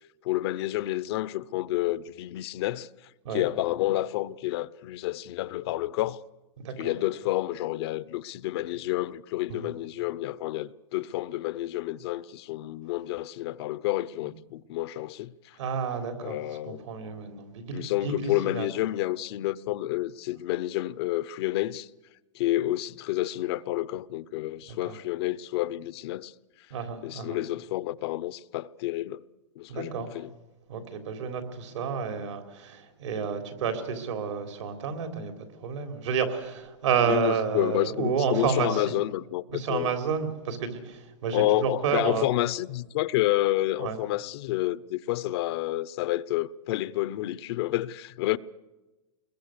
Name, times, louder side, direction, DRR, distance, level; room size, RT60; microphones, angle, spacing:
voice 1, 0.2-2.9 3.3-6.2 6.8-15.6 16.2-16.9 17.7-21.9 22.3-26.3 27.0-29.2 29.6-30.3 37.0-39.9 41.3-48.4, left 16 dB, 60° left, 0.8 m, -29 dB
voice 2, 6.6-6.9 9.6-9.7 15.6-16.4 16.7-18.7 24.8-25.0 26.7-27.4 29.7-30.1 30.7-35.3 35.6-38.9 39.5-42.3 43.8-44.0, right 6 dB, 85° right, 3.8 m, -30 dB
25.5 x 21.5 x 6.7 m
supercardioid pair, 140°, 15 cm